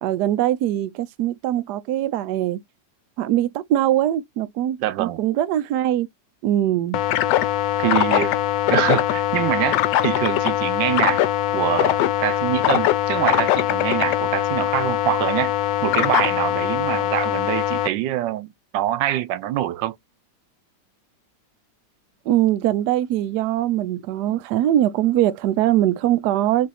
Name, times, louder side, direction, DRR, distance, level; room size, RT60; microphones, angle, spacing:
voice 1, 0.0-2.6 3.2-6.1 6.4-7.0 22.3-26.7, right 12 dB, 75° right, 1.1 m, -22 dB
voice 2, 4.8-5.2 7.8-8.3 8.7-11.2 11.5-15.5 15.8-20.0, right 13 dB, 90° right, 1.3 m, -24 dB
sound 1, 6.9-17.9, left 12 dB, 80° left, 1.2 m, -21 dB
3.9 x 2.7 x 4.1 m
omnidirectional pair, 1.9 m